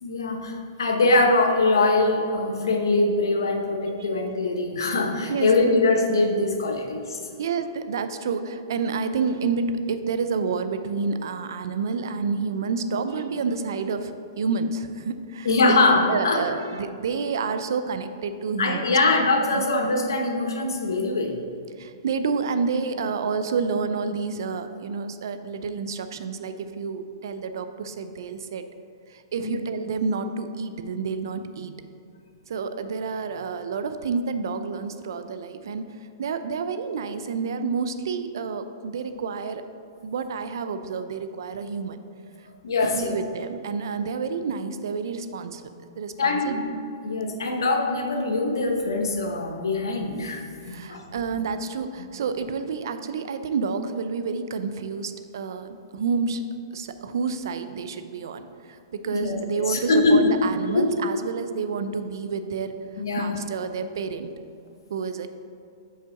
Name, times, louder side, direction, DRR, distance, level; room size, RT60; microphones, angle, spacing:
voice 1, 0.0-7.2 15.4-16.4 18.6-21.4 29.4-29.6 42.6-43.1 46.2-46.7 47.0-51.0 59.1-60.3 60.7-60.8 63.0-63.3, left 2 dB, 90° left, 2 dB, 1.1 m, -23 dB
voice 2, 7.4-15.5 16.1-19.1 19.5-19.6 21.8-28.6 29.1-31.8 32.5-35.8 36.2-39.6 40.0-42.0 42.8-45.6 46.0-46.6 50.6-56.4 56.7-62.7 63.2-64.3 64.9-65.3, right 5 dB, 70° right, 10 dB, 0.5 m, -29 dB
5.5 x 4.6 x 6.3 m, 2.4 s
hypercardioid pair, 140°, 2 cm